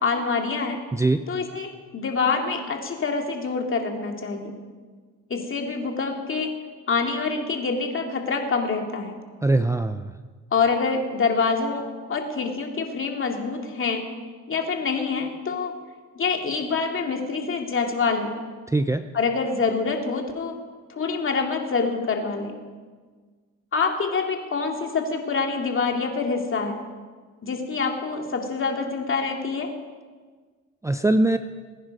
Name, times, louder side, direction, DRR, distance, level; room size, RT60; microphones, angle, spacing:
voice 1, 0.0-0.8 1.3-4.5 5.3-6.5 6.9-9.1 10.5-11.8 12.1-14.0 14.5-15.7 16.2-18.3 19.1-20.6 20.9-22.5 23.7-26.8 27.4-29.7, left 4 dB, 45° left, 2 dB, 2.5 m, -26 dB
voice 2, 0.9-1.2 9.4-10.1 18.7-19.0 30.8-31.4, right 2 dB, 10° right, 9 dB, 0.5 m, -21 dB
20.5 x 9.9 x 5.4 m, 1.5 s
cardioid pair, 90°, 30 cm